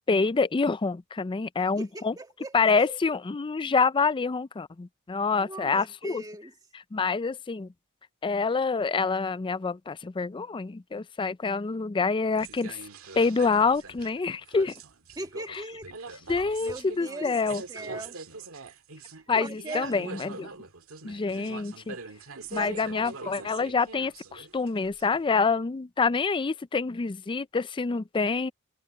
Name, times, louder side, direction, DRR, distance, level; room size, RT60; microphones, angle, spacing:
voice 1, 0.1-2.1 2.5-6.2 6.9-7.7 8.2-12.8 13.2-14.7 15.5-15.6 16.3-17.6 19.3-20.5 21.0-22.0 22.5-28.5, left 4 dB, 25° left, 0.4 m, -27 dB
voice 2, 1.8-3.0 5.4-6.5 15.2-15.9 16.6-17.3 17.7-18.2 19.4-20.0 22.5-22.7, right 2 dB, 20° right, 1.9 m, -39 dB
sound 1, 12.3-25.4, right 4 dB, 80° right, 2.0 m, -43 dB
head